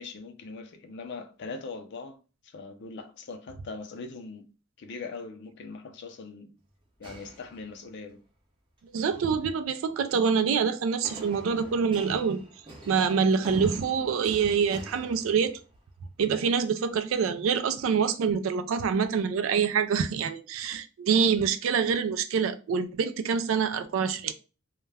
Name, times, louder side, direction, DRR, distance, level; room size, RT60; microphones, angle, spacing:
voice 1, 0.0-4.5 4.8-6.6 7.0-8.2, left 4 dB, 60° left, 0.5 m, -41 dB
sound 1, 7.0-8.1 8.8-9.3 11.0-15.9, right 1 dB, 25° right, 0.7 m, -46 dB
voice 2, 8.9-12.4 12.9-15.6 16.2-24.3, right 6 dB, 85° right, 0.3 m, -26 dB
2.3 x 2.1 x 3.3 m
head